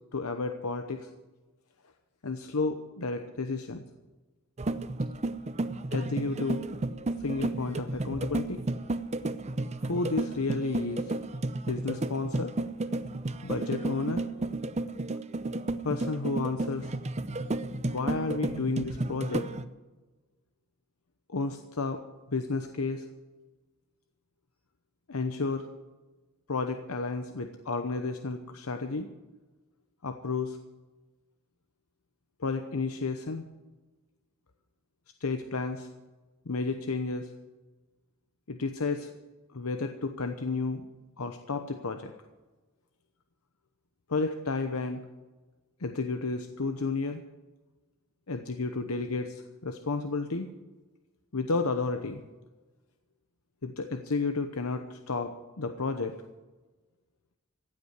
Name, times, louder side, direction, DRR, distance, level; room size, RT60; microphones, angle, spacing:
voice 1, 0.1-1.1 2.2-3.8 5.9-6.7 7.2-8.6 9.8-11.0 11.7-12.5 13.4-14.2 15.8-16.9 17.8-19.4 21.3-22.0 22.3-23.0 25.1-25.7 26.5-29.1 30.0-30.6 32.4-33.4 35.2-35.9 36.5-37.3 38.5-39.1 39.5-40.9 41.2-42.1 44.1-45.0 45.8-47.2 48.3-50.5 51.3-52.2 53.6-55.3 55.6-56.1, left 3 dB, 80° left, 7 dB, 0.9 m, -32 dB
sound 1, 4.6-19.6, right 2 dB, 30° right, 0.6 m, -32 dB
16.0 x 8.5 x 9.7 m, 1.2 s
head